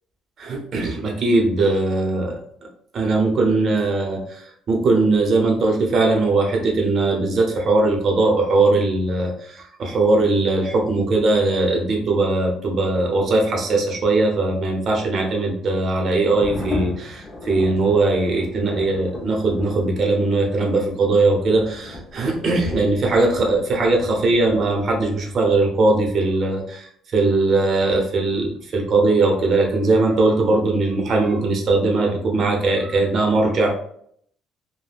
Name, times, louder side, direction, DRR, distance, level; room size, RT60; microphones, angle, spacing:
voice 1, 0.4-2.4 2.9-33.7, right 2 dB, 45° right, 0 dB, 0.7 m, -20 dB
sound 1, 16.2-25.6, left 1 dB, 20° left, 0.6 m, -36 dB
3.4 x 2.1 x 2.3 m, 0.65 s
cardioid pair, 120°, 0 cm